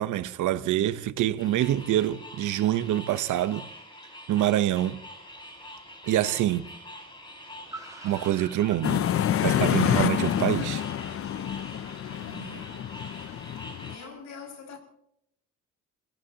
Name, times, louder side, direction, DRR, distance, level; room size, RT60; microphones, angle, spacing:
voice 1, 0.0-3.7 4.3-5.0 6.0-6.7 8.0-9.0 9.4-10.8, right 13 dB, 85° right, 1.0 m, -26 dB
sound 1, 1.4-14.1, left 1 dB, 15° left, 6.4 m, -45 dB
Car, 4.9-12.3, right 3 dB, 10° right, 5.4 m, -51 dB
sound 2, 8.8-13.9, left 10 dB, 50° left, 0.5 m, -27 dB
voice 2, 12.0-12.8 13.8-14.8, left 3 dB, 70° left, 5.9 m, -45 dB
28.5 x 17.0 x 2.9 m
cardioid pair, 90°, 30 cm